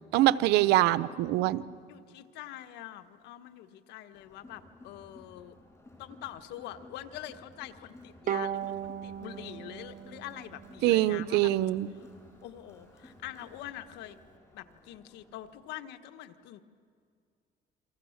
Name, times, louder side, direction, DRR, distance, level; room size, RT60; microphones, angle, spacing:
voice 1, 0.1-1.6 10.8-11.9, right 15 dB, 90° right, 16 dB, 0.8 m, -24 dB
voice 2, 1.9-5.6 6.0-11.5 12.4-14.2 14.5-16.6, left 13 dB, 90° left, 10 dB, 1.3 m, -44 dB
Crowd, 4.1-15.7, left 1 dB, 15° left, 5.5 m, -55 dB
Bowed string instrument, 8.3-11.6, right 9 dB, 55° right, 0.9 m, -37 dB
29.0 x 24.5 x 7.3 m, 2.2 s
cardioid pair, 110°, 17 cm